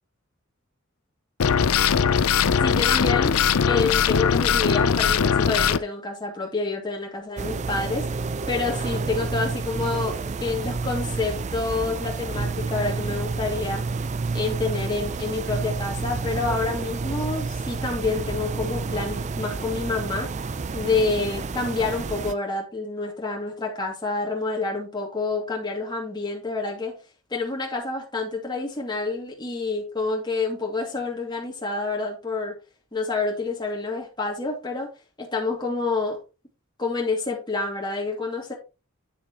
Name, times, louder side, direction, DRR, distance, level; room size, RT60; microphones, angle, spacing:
sound 1, 1.4-5.8, left 7 dB, 90° left, 0.5 m, -20 dB
voice 1, 2.6-8.1 8.5-13.8 14.3-20.3 20.7-26.9 27.3-32.6 32.9-34.9 35.2-36.2 36.8-38.5, left 3 dB, 20° left, 2.4 m, -28 dB
sound 2, 7.4-22.3, right 4 dB, 35° right, 0.4 m, -29 dB
9.0 x 6.9 x 3.0 m
head